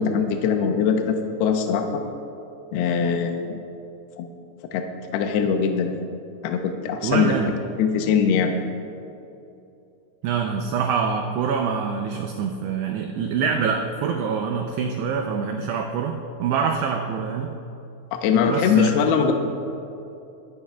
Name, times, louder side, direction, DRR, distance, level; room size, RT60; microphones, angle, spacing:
voice 1, 0.0-2.0 2.7-3.6 4.2-4.3 4.7-4.8 5.1-6.0 6.4-7.3 7.8-8.5 18.1-19.3, left 6 dB, 85° left, 4 dB, 2.5 m, -21 dB
voice 2, 7.0-7.5 10.2-17.6 18.5-19.1, right 6 dB, 90° right, 3 dB, 2.3 m, -25 dB
24.5 x 11.0 x 2.3 m, 2.7 s
omnidirectional pair, 5.6 m